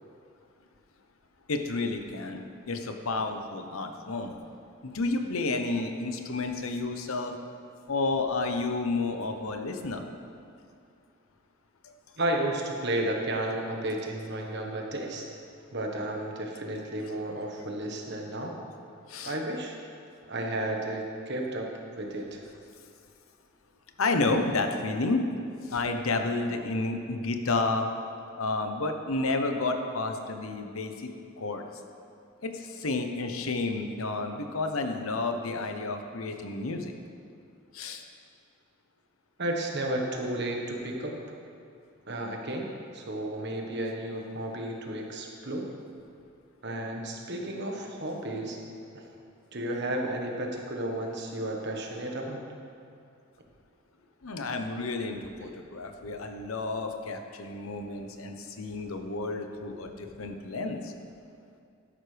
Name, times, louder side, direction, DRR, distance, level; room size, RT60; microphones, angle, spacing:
voice 1, 1.5-4.3 4.8-7.3 7.9-10.0 19.1-19.3 24.0-25.2 25.7-27.9 28.4-31.1 31.4-31.7 32.4-36.9 37.7-38.0 54.2-60.9, left 3 dB, 80° left, 5 dB, 0.9 m, -31 dB
voice 2, 12.2-15.3 15.7-18.6 19.2-19.7 20.3-22.4 39.4-41.1 42.0-42.7 42.9-45.7 46.6-48.6 48.9-49.0 49.5-52.5, right 1 dB, 55° right, 1 dB, 1.4 m, -32 dB
12.5 x 11.0 x 3.4 m, 2.4 s
head